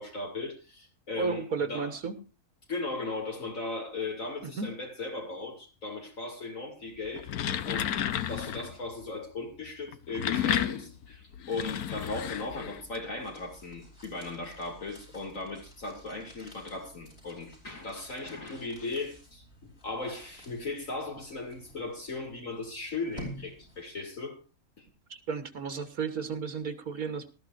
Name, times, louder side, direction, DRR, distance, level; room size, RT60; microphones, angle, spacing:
voice 1, 0.0-2.0 2.7-7.3 7.6-24.4 24.8-24.9, left 3 dB, 60° left, 2 dB, 2.9 m, -37 dB
voice 2, 1.2-2.2 4.4-4.7 25.1-27.3, right 5 dB, 80° right, 8 dB, 2.0 m, -33 dB
sound 1, 7.0-8.7 9.9-13.0, left 10 dB, 85° left, 1.4 m, -32 dB
sound 2, 11.6-24.1, equal, 40° left, 5.0 m, -51 dB
19.0 x 13.0 x 2.6 m, 0.30 s
omnidirectional pair, 1.5 m